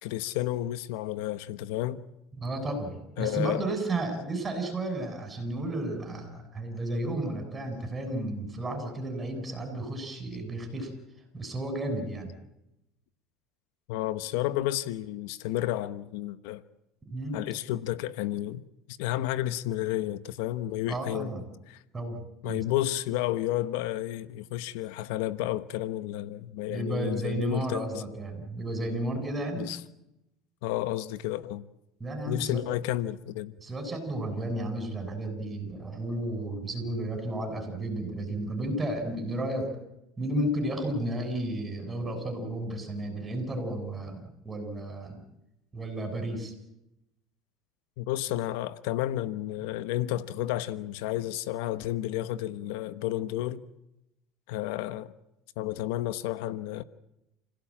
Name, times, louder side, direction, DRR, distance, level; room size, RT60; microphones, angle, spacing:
voice 1, 0.0-2.0 3.2-3.6 13.9-16.6 17.3-18.6 19.0-21.3 22.4-28.0 29.5-29.8 30.6-31.6 32.3-33.5 48.0-53.6 54.5-55.1 55.6-56.8, left 14 dB, 80° left, 1.1 m, -31 dB
voice 2, 2.3-10.9 11.3-12.3 17.1-17.4 20.9-21.4 21.9-22.2 22.4-22.6 26.7-29.7 32.0-32.6 33.6-39.7 40.2-45.2 45.7-46.5, right 1 dB, 20° right, 7.6 m, -33 dB
28.5 x 17.0 x 8.8 m
supercardioid pair, 120°, 0 cm